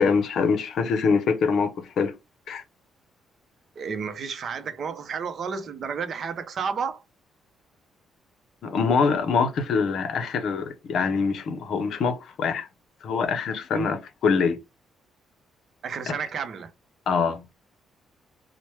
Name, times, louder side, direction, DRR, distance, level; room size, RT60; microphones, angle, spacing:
voice 1, 0.0-2.1 2.5-2.6 8.6-12.7 13.0-14.0 14.2-14.6 16.1-16.2 17.1-17.4, left 5 dB, 70° left, 0.6 m, -24 dB
voice 2, 3.8-7.0 13.7-13.9 15.8-16.7, right 6 dB, 55° right, 0.5 m, -31 dB
3.0 x 2.1 x 3.1 m
cardioid pair, 90°, 0 cm